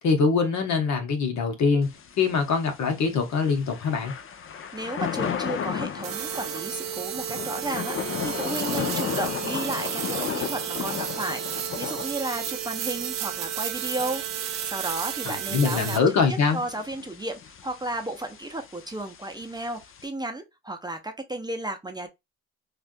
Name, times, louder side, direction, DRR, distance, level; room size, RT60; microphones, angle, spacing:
voice 1, 0.0-1.9 2.2-4.1 15.2-16.6, left 5 dB, 65° left, 1.2 m, -23 dB
Thunder / Rain, 1.8-20.1, left 8 dB, 45° left, 0.6 m, -35 dB
voice 2, 4.7-16.0 16.3-22.1, right 2 dB, 15° right, 0.6 m, -33 dB
sound 1, 6.0-16.0, right 11 dB, 60° right, 0.6 m, -32 dB
3.3 x 2.4 x 2.5 m
cardioid pair, 90°, 30 cm